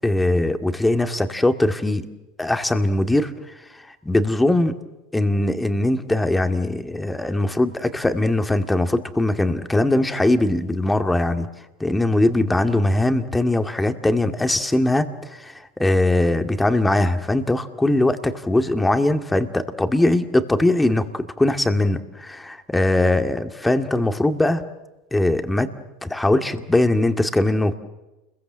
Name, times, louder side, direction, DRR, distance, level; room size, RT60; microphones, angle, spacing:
voice 1, 0.0-2.1 2.4-3.3 3.7-4.7 5.1-11.5 11.8-24.6 25.1-25.7 26.0-27.8, left 1 dB, 10° left, 7 dB, 2.2 m, -21 dB
29.5 x 22.5 x 7.6 m, 1.0 s
hypercardioid pair, 95°, 0 cm